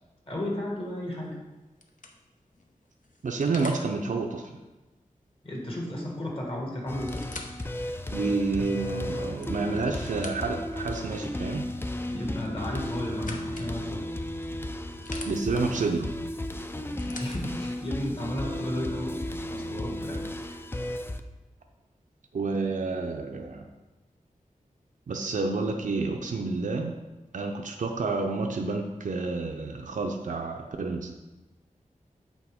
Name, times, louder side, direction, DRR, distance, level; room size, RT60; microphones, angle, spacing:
voice 1, 0.3-1.4 5.4-7.2 12.1-14.0 16.9-19.2 19.5-20.6, left 1 dB, 40° left, -2 dB, 1.7 m, -34 dB
sound 1, 0.9-1.2 1.8-3.9 5.9-6.0 6.3-6.4 6.9-7.7 8.3-8.4 9.1-10.7 12.4-13.7 14.4-15.3 16.6-17.4 18.3-18.4, left 3 dB, 70° left, 0.7 m, -45 dB
voice 2, 3.2-4.5 8.1-11.7 15.3-16.1 22.3-23.7 25.1-26.9 27.3-31.1, right 3 dB, 65° right, 3 dB, 0.5 m, -29 dB
sound 2, 6.9-21.2, left 1 dB, 15° left, 0.4 m, -34 dB
8.2 x 4.1 x 3.5 m, 1.1 s
wide cardioid pair, 95°, 14 cm